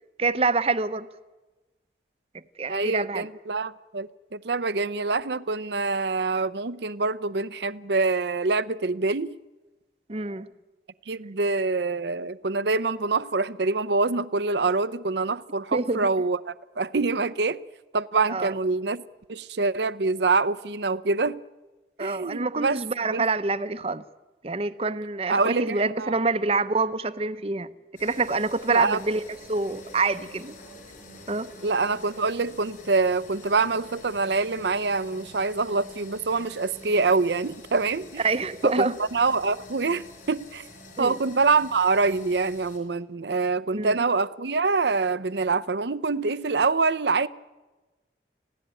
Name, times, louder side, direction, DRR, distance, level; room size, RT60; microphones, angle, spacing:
voice 1, 0.2-1.1 2.6-3.3 10.1-10.5 15.7-16.0 18.3-18.5 22.0-24.0 24.4-27.7 28.0-29.2 29.5-30.5 31.3-31.5 38.2-38.9 41.0-41.2 43.7-44.0, right 3 dB, 35° right, 0.8 m, -26 dB
voice 2, 2.7-9.4 11.1-17.6 17.9-19.0 19.3-21.4 22.0-22.8 23.1-23.3 25.3-26.2 28.7-29.0 31.6-38.2 38.6-40.6 41.0-47.3, right 3 dB, 70° right, 0.7 m, -25 dB
sound 1, 28.0-42.8, left 2 dB, 50° left, 7.1 m, -47 dB
27.0 x 16.5 x 9.0 m
head